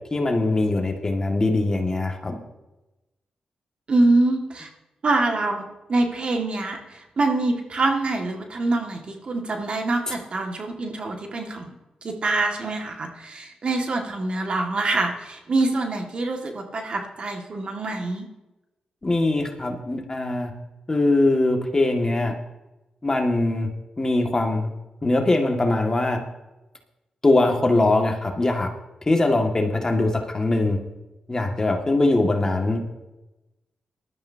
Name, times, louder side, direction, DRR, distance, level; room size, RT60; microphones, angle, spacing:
voice 1, 0.1-2.4 19.0-20.5 20.9-22.3 23.0-23.7 24.0-24.7 25.0-26.2 27.2-28.7 29.1-30.8 31.3-32.8, left 2 dB, 30° left, 2 dB, 2.0 m, -21 dB
voice 2, 3.9-4.7 5.0-11.7 12.0-18.3, right 2 dB, 55° right, 3 dB, 2.0 m, -25 dB
19.0 x 12.0 x 2.8 m, 1.0 s
cardioid pair, 65°, 2 cm